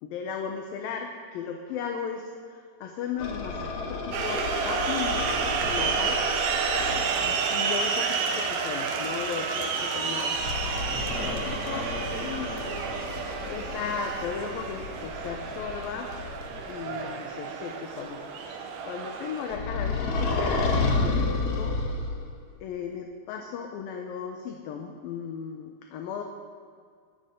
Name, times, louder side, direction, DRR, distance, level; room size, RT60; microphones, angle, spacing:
voice 1, 0.0-5.2 5.7-6.2 7.3-10.4 11.2-11.9 12.2-12.5 13.5-16.1 16.7-18.2 18.9-21.8 22.6-26.2, left 7 dB, 75° left, 3 dB, 2.5 m, -36 dB
sound 1, 3.2-7.3 10.4-16.7 19.5-22.4, left 3 dB, 55° left, 1.6 m, -31 dB
sound 2, 4.1-19.6, right 5 dB, 85° right, 3.2 m, -30 dB
voice 2, 5.6-6.1 6.7-7.4 10.9-12.8 16.5-17.1, equal, 35° left, -6 dB, 5.0 m, -41 dB
sound 3, 7.1-12.8, right 3 dB, 50° right, 2.7 m, -48 dB
22.5 x 12.5 x 3.8 m, 2.1 s
omnidirectional pair, 4.5 m